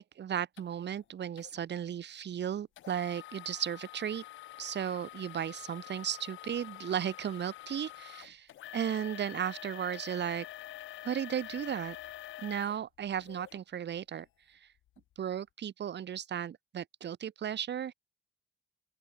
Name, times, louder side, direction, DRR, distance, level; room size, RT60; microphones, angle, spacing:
voice 1, 0.0-4.2 4.6-10.5 11.0-12.0 12.4-14.7 15.2-17.9, right 9 dB, 60° right, 5.5 m, -35 dB
sound 1, 0.6-0.7 1.4-1.6 2.8-13.6 14.2-14.3 14.9-15.0, left 13 dB, 80° left, 2.5 m, -47 dB
open air
cardioid pair, 90°, 20 cm